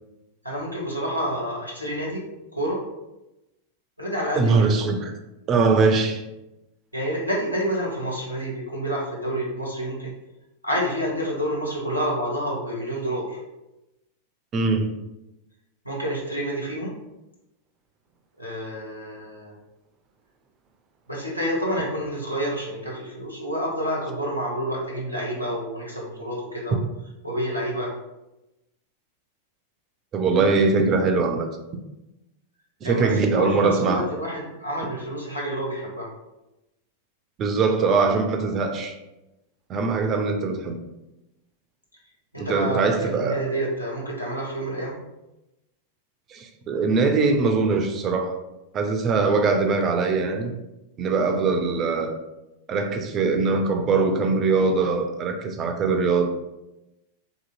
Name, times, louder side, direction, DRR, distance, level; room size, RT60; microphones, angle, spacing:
voice 1, 0.4-2.2 2.5-2.8 4.0-4.7 6.9-10.1 10.6-13.4 15.8-16.9 18.4-19.6 21.1-26.8 27.2-27.9 32.8-36.1 42.3-45.0, equal, 85° left, -4 dB, 0.8 m, -28 dB
voice 2, 4.4-5.0 5.5-6.2 14.5-14.9 30.1-31.5 32.8-34.0 37.4-39.0 39.7-40.8 42.4-43.4 46.3-48.3 48.7-50.5 51.0-52.1 52.7-56.3, right 4 dB, 30° right, 5 dB, 0.3 m, -22 dB
2.6 x 2.6 x 2.5 m, 0.96 s
figure-of-eight pair, 90°, 0 cm